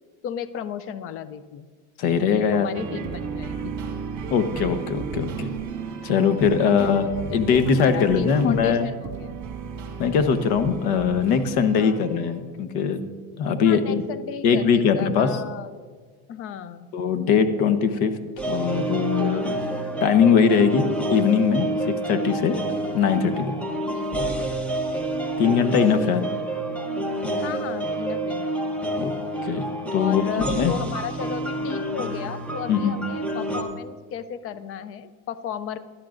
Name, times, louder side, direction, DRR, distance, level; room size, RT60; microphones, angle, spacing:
voice 1, 0.2-1.7 2.5-3.7 6.5-7.0 7.3-9.3 11.8-12.0 13.6-15.7 16.3-16.9 23.9-24.1 26.0-26.4 27.4-28.7 29.9-35.8, left 8 dB, 30° left, 13 dB, 0.5 m, -34 dB
voice 2, 2.0-2.7 4.3-5.5 6.0-8.9 10.0-13.0 13.4-14.0 14.4-15.4 16.9-18.1 18.5-19.5 20.0-21.7 22.1-22.6 22.9-23.5 25.4-26.3 29.0-29.1 29.4-30.7 32.7-32.9, left 6 dB, 60° left, 9 dB, 1.1 m, -21 dB
sound 1, 2.7-12.4, right 5 dB, 40° right, 1.6 m, -34 dB
sound 2, 18.4-33.6, right 1 dB, 5° left, 0.9 m, -28 dB
16.5 x 12.0 x 2.6 m, 1.5 s
supercardioid pair, 130°, 43 cm